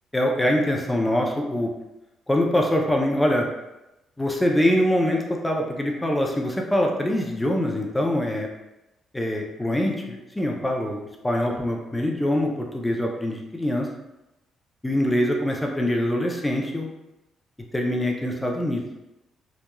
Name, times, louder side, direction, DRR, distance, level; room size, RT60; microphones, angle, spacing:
voice 1, 0.1-1.7 2.3-3.5 4.2-8.5 9.1-13.9 14.8-16.9 17.7-18.8, left 1 dB, 10° left, 0 dB, 0.4 m, -24 dB
2.9 x 2.3 x 2.2 m, 0.94 s
cardioid pair, 90°, 0 cm